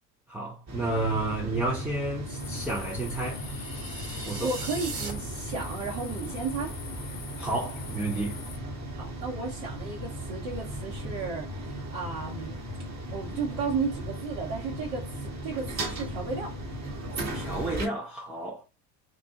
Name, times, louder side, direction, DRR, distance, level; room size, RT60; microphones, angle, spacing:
voice 1, 0.3-3.4 4.3-4.5 7.4-8.4 17.3-18.6, right 2 dB, 5° right, 0.3 m, -31 dB
sound 1, 0.7-17.9, right 1 dB, 35° right, 1.0 m, -37 dB
sound 2, 2.4-8.6, left 7 dB, 45° left, 0.8 m, -44 dB
sound 3, 3.1-5.1, right 3 dB, 80° right, 1.1 m, -39 dB
voice 2, 4.4-6.7 8.9-12.6 13.1-16.5, right 4 dB, 65° right, 0.9 m, -34 dB
2.5 x 2.3 x 3.7 m
hypercardioid pair, 70°, 49 cm